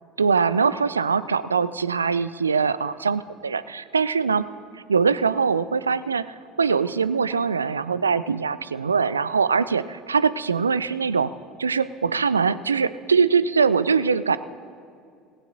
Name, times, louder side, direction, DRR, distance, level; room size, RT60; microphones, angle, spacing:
voice 1, 0.2-4.4 4.7-11.3 11.6-14.4, right 5 dB, 85° right, 16 dB, 0.3 m, -22 dB
18.0 x 17.0 x 2.7 m, 2.3 s
figure-of-eight pair, 65°, 0 cm